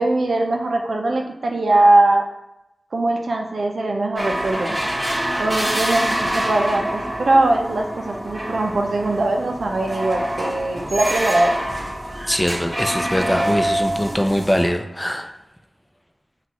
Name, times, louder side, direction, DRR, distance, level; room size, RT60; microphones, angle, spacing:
voice 1, 0.0-2.3 2.9-4.8 5.4-11.6, right 2 dB, 90° right, 2 dB, 0.5 m, -20 dB
sound 1, 4.2-14.7, right 1 dB, 15° right, 1.5 m, -26 dB
voice 2, 12.3-15.3, equal, 10° left, 5 dB, 0.5 m, -22 dB
6.0 x 2.4 x 3.0 m, 0.88 s
wide cardioid pair, 50°, 0 cm